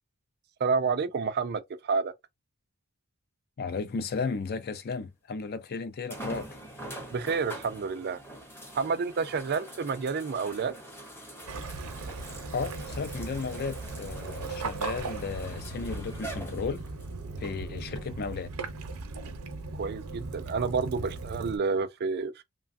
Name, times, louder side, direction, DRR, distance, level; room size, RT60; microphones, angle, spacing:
voice 1, 0.6-2.1 7.1-8.2 8.8-10.7 19.7-22.4, right 5 dB, 45° right, 0.4 m, -29 dB
voice 2, 3.6-6.6 12.5-16.8 17.4-18.5, left 4 dB, 45° left, 0.4 m, -34 dB
sound 1, 5.0-5.1 6.1-17.1 17.9-18.0 21.4-21.5, right 1 dB, 10° left, 0.7 m, -44 dB
Waves surf / Splash splatter / Trickle dribble, 11.5-21.6, right 3 dB, 85° right, 0.7 m, -38 dB
3.1 x 2.2 x 2.5 m
head